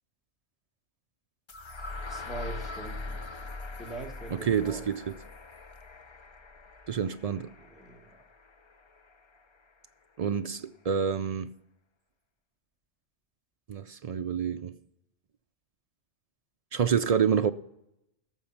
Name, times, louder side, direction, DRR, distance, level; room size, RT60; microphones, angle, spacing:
sound 1, 1.5-9.4, left 3 dB, 35° left, 0.5 m, -42 dB
voice 1, 2.1-3.2 3.8-4.9 7.6-8.2, right 2 dB, ahead, 1.9 m, -42 dB
voice 2, 4.5-5.0 6.9-7.5 10.2-11.5 13.7-14.8 16.7-17.5, right 7 dB, 55° right, 0.4 m, -27 dB
17.5 x 7.1 x 5.8 m
omnidirectional pair, 1.2 m